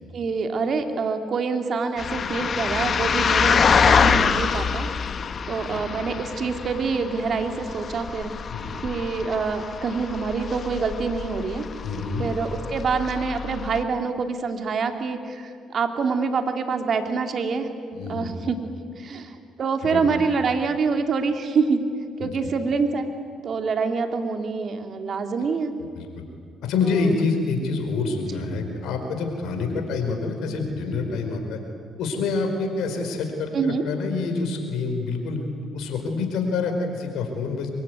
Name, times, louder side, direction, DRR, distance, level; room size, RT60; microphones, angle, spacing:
voice 1, 0.1-4.9 5.5-8.3 8.8-11.6 12.2-17.7 18.1-18.7 19.0-21.8 22.2-23.1 23.4-25.7 33.5-33.8, right 5 dB, 55° right, 6 dB, 2.7 m, -26 dB
sound 1, 2.0-13.8, left 6 dB, 50° left, 1.3 m, -25 dB
voice 2, 8.5-8.8 11.8-12.3 17.9-18.3 19.8-20.1 22.2-22.5 25.8-26.1 26.6-31.6 32.0-35.4 35.7-37.7, left 4 dB, 75° left, 4 dB, 4.7 m, -27 dB
24.0 x 22.5 x 9.5 m, 2.2 s
supercardioid pair, 60°, 0 cm